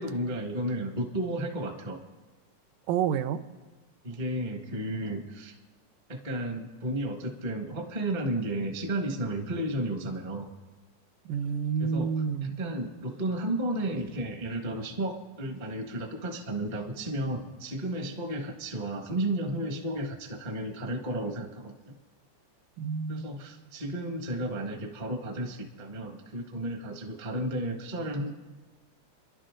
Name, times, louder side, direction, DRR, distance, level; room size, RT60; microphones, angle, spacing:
voice 1, 0.0-2.0 4.0-5.5 6.1-10.5 11.8-21.9 23.1-28.3, right 1 dB, 35° right, 2 dB, 0.7 m, -33 dB
voice 2, 2.9-3.4 11.3-12.6 22.8-23.3, right 7 dB, 90° right, 10 dB, 2.4 m, -29 dB
29.0 x 11.5 x 3.8 m, 1.2 s
omnidirectional pair, 3.8 m